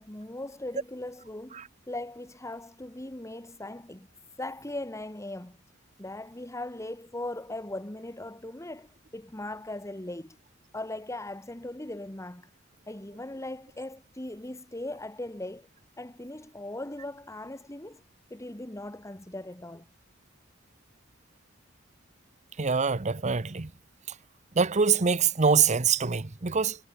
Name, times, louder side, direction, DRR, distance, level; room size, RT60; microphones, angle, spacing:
voice 1, 0.0-4.1 4.4-5.6 6.0-10.4 10.7-12.5 12.9-15.7 16.0-18.0 18.3-19.9, left 1 dB, 15° left, 1.7 m, -39 dB
voice 2, 22.6-23.7 24.6-26.8, right 5 dB, 35° right, 0.9 m, -24 dB
head